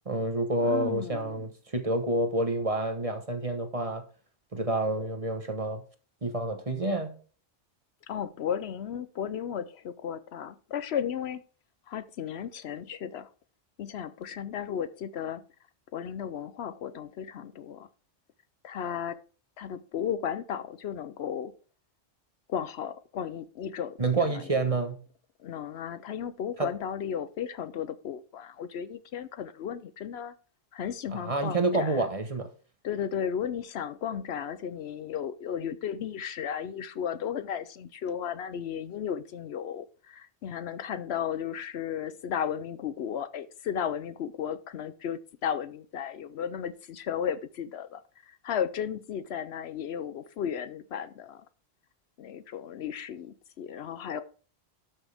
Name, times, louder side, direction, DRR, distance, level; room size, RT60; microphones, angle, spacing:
voice 1, 0.1-4.0 4.5-5.8 6.2-7.1 24.0-25.0 26.6-26.7 31.1-32.5, right 2 dB, 30° right, 1.1 m, -28 dB
voice 2, 0.6-1.5 8.1-11.4 11.9-13.3 13.8-15.4 15.9-17.9 18.6-19.2 19.6-21.5 22.5-24.6 25.4-30.3 30.7-32.1 32.8-51.4 52.2-54.2, left 8 dB, 70° left, 0.8 m, -34 dB
12.0 x 6.2 x 3.4 m
omnidirectional pair, 1.2 m